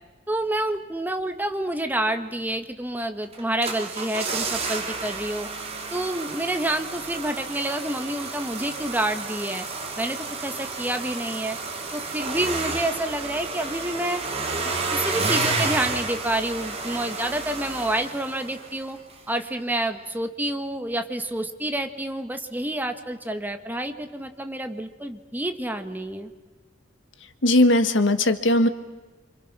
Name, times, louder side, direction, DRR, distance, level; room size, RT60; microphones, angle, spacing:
voice 1, 0.3-5.5 5.9-9.7 10.0-11.6 11.9-14.2 14.6-19.0 19.3-26.3, right 1 dB, 10° right, 7 dB, 1.6 m, -28 dB
sound 1, 3.3-18.8 19.1-19.2, right 3 dB, 35° right, 3.3 m, -31 dB
voice 2, 27.4-28.7, left 1 dB, 80° left, 9 dB, 1.6 m, -18 dB
28.0 x 27.0 x 6.1 m, 1.3 s
head